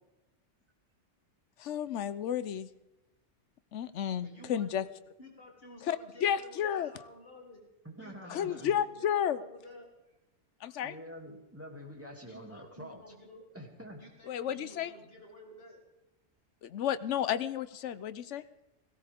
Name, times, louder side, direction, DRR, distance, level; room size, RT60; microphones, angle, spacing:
voice 1, 1.6-2.7 3.7-4.9 5.8-6.9 8.3-9.4 10.6-10.9 14.3-14.9 16.6-18.4, left 9 dB, 80° left, 14 dB, 1.0 m, -32 dB
voice 2, 4.2-4.9 5.2-7.6 8.0-10.2 12.2-13.7 14.0-15.8 18.4-18.5, left 1 dB, 55° left, -1 dB, 3.3 m, -52 dB
voice 3, 7.8-8.7 10.8-13.0 13.5-14.0, equal, 10° right, 0 dB, 2.5 m, -46 dB
17.5 x 16.0 x 3.6 m, 1.0 s
omnidirectional pair, 1.2 m